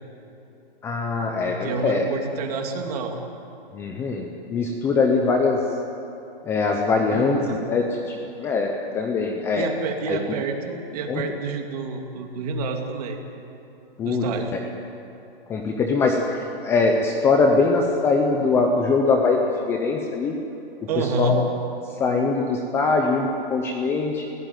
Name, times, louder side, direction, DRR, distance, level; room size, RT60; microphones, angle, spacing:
voice 1, 0.8-2.0 3.7-5.6 6.4-9.7 10.1-10.2 11.1-11.2 14.0-14.6 15.5-20.4 21.0-21.4 22.0-24.3, left 4 dB, 10° left, 2 dB, 0.7 m, -22 dB
voice 2, 1.4-3.2 7.1-7.6 9.5-13.2 14.0-14.5 20.9-21.4, right 4 dB, 40° right, 3 dB, 2.7 m, -28 dB
22.5 x 17.0 x 9.1 m, 2.9 s
hypercardioid pair, 160°, 30 cm